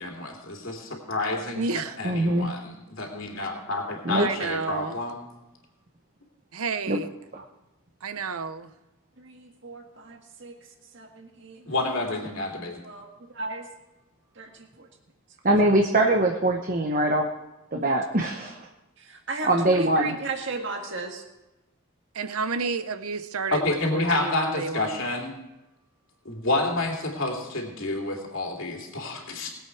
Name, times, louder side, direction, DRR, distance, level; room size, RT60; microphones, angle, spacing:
voice 1, 0.0-1.6 2.0-5.2 11.7-12.8 23.5-25.3 26.2-29.5, left 2 dB, 65° left, 1 dB, 2.7 m, -29 dB
voice 2, 1.5-2.1 4.1-5.0 6.5-7.1 8.0-8.7 22.1-25.0, right 4 dB, 85° right, 12 dB, 0.7 m, -31 dB
voice 3, 2.0-2.5 4.0-4.3 6.9-7.0 7.3-7.4 15.4-17.3 17.7-18.7 19.4-20.1, right 1 dB, 40° right, 2 dB, 0.9 m, -22 dB
voice 4, 9.2-10.5 10.9-11.7 12.8-13.7 14.4-14.9 17.8-17.9 19.0-21.2, right 3 dB, 55° right, 3 dB, 1.9 m, -36 dB
20.5 x 8.3 x 4.6 m, 1.0 s
head